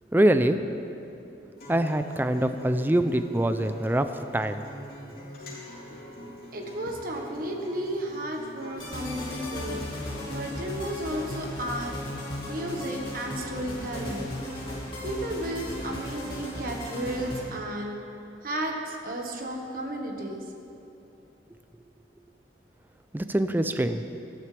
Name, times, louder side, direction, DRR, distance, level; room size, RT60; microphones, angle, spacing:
voice 1, 0.1-0.6 1.7-4.6 23.1-24.0, right 1 dB, 10° right, 9 dB, 0.4 m, -24 dB
Acoustic guitar, 1.6-17.6, equal, 55° left, 2.9 m, -45 dB
voice 2, 5.8-9.8 10.3-11.9 12.5-14.3 15.0-17.9 18.4-20.4, right 1 dB, 55° right, 1 dB, 1.5 m, -33 dB
sound 1, 8.8-17.4, left 1 dB, 30° left, 2.5 m, -36 dB
18.0 x 12.5 x 3.4 m, 2.8 s
head